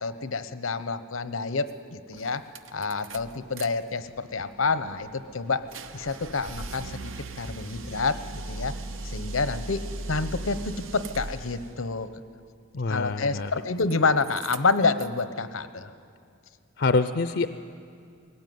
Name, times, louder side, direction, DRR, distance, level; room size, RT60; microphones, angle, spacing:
voice 1, 0.0-2.4 2.7-5.7 5.9-8.7 9.0-12.1 12.9-15.9, left 4 dB, 90° left, 12 dB, 1.0 m, -28 dB
sound 1, 1.7-1.8 2.1-3.7 4.0-11.8 13.2-13.9 14.2-15.2, right 2 dB, 75° right, 0.9 m, -39 dB
voice 2, 12.7-13.5 16.8-17.5, left 3 dB, 60° left, 10 dB, 0.6 m, -25 dB
21.5 x 17.5 x 9.4 m, 2.4 s
head